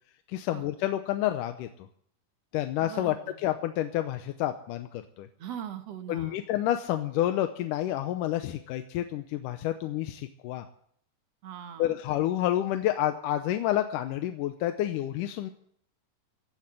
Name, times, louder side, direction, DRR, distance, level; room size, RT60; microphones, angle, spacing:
voice 1, 0.3-1.9 2.5-5.3 6.1-10.7 11.8-15.5, left 13 dB, 75° left, 8 dB, 2.2 m, -29 dB
voice 2, 2.8-3.4 5.4-6.4 11.4-12.0, right 9 dB, 60° right, 7 dB, 1.9 m, -41 dB
16.0 x 7.2 x 9.7 m, 0.64 s
omnidirectional pair, 4.0 m